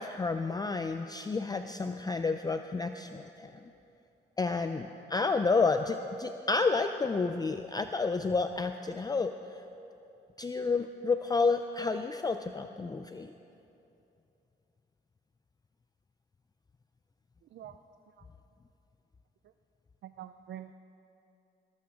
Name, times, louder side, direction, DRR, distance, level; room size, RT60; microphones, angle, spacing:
voice 1, 0.0-3.5 4.4-9.3 10.4-13.3, left 4 dB, 20° left, 8 dB, 0.4 m, -30 dB
voice 2, 20.0-20.7, right 11 dB, 65° right, 9 dB, 0.5 m, -45 dB
18.5 x 15.0 x 3.7 m, 2.8 s
cardioid pair, 90°, 20 cm